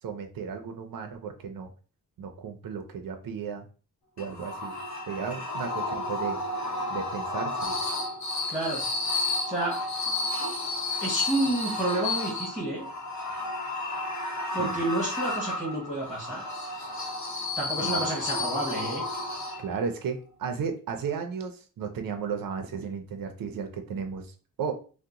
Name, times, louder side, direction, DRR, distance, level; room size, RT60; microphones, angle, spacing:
voice 1, 0.0-1.7 2.2-3.7 4.2-4.7 5.1-6.4 6.9-7.8 14.6-14.8 17.8-18.1 19.6-24.7, right 6 dB, 75° right, 5 dB, 0.5 m, -34 dB
sound 1, 4.2-19.9, left 2 dB, 55° left, 0.7 m, -32 dB
voice 2, 8.5-8.8 9.5-9.8 11.0-12.9 14.5-16.4 17.6-19.0, right 1 dB, ahead, -7 dB, 1.0 m, -30 dB
2.8 x 2.1 x 3.6 m, 0.38 s
wide cardioid pair, 160°, 35 cm